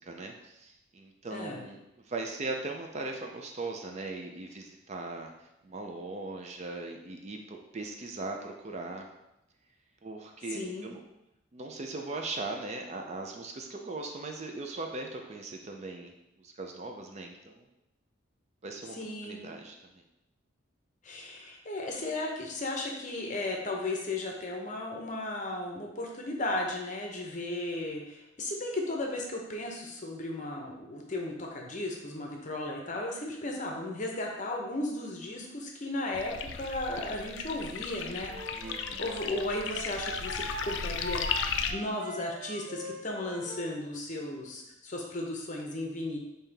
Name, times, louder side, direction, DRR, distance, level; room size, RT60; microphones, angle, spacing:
voice 1, 0.0-1.8 2.1-5.3 5.6-9.1 10.0-11.0 11.5-16.1 16.4-17.6 18.6-19.0 19.2-20.0 33.4-33.6 38.5-39.0, right 3 dB, 35° right, 3 dB, 0.4 m, -39 dB
voice 2, 1.3-1.6 10.5-10.9 18.9-19.4 21.0-38.3 38.7-46.2, left 2 dB, 35° left, 0 dB, 0.7 m, -35 dB
sound 1, 36.1-41.7, left 6 dB, 65° left, 0.3 m, -35 dB
Wind instrument woodwind instrument, 38.2-43.7, equal, 75° right, 1.4 m, -42 dB
5.4 x 2.8 x 3.4 m, 0.89 s
head